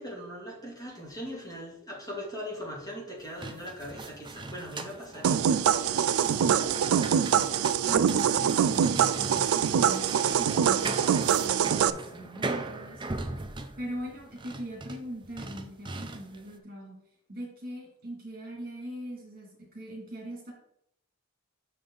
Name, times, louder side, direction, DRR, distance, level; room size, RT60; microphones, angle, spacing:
voice 1, 0.0-6.5 9.6-9.8, equal, 20° left, -4 dB, 2.5 m, -41 dB
sound 1, 3.2-16.5, right 2 dB, 25° right, 0.5 m, -39 dB
sound 2, 5.2-11.9, right 8 dB, 85° right, 0.3 m, -24 dB
voice 2, 6.4-13.3 13.8-17.0 17.3-20.5, right 1 dB, 45° right, -1 dB, 2.6 m, -41 dB
6.6 x 5.3 x 3.9 m, 0.76 s
head